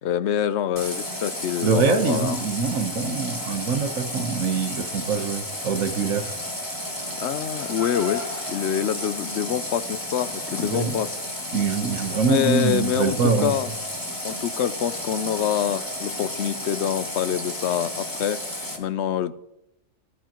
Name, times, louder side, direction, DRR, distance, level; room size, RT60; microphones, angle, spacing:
voice 1, 0.0-2.4 7.2-8.2 8.5-11.2 12.2-13.7 14.2-18.4 18.8-19.3, left 9 dB, 65° left, 13 dB, 0.8 m, -26 dB
Water tap faucet, 0.8-18.8, left 1 dB, 15° left, 2.3 m, -32 dB
voice 2, 1.6-6.3 10.6-11.0 11.5-13.6, right 5 dB, 90° right, 6 dB, 1.5 m, -24 dB
Car, 6.4-8.6, left 5 dB, 35° left, 2.1 m, -37 dB
19.0 x 11.5 x 3.0 m, 0.85 s
omnidirectional pair, 1.4 m